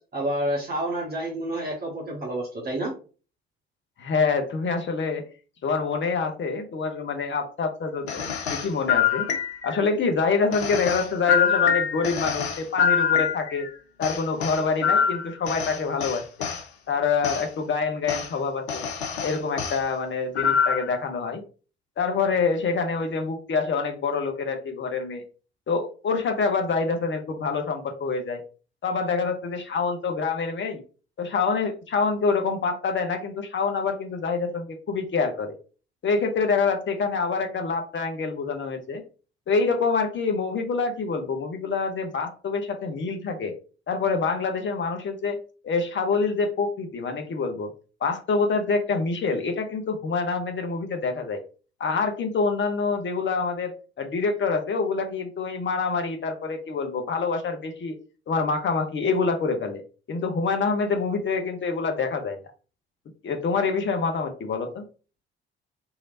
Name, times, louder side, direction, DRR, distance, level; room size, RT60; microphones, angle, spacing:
voice 1, 0.1-2.9, right 1 dB, 30° right, -5 dB, 1.2 m, -29 dB
voice 2, 4.0-5.2 5.6-9.3 9.6-13.7 14.0-16.2 16.9-18.8 19.2-21.4 22.0-25.2 25.7-28.4 28.8-30.8 31.2-35.6 36.0-39.0 39.5-43.5 43.9-45.4 45.6-47.7 48.0-51.4 51.8-58.0 58.3-59.8 60.1-62.4 63.2-64.8, left 4 dB, 35° left, 5 dB, 0.8 m, -26 dB
sound 1, 8.1-9.8 10.5-13.7 14.0-16.6 17.2-17.4 18.1-18.3 18.7-19.8 20.4-21.0, left 7 dB, 85° left, 0.5 m, -25 dB
3.2 x 2.8 x 2.5 m, 0.37 s
figure-of-eight pair, 45°, 32 cm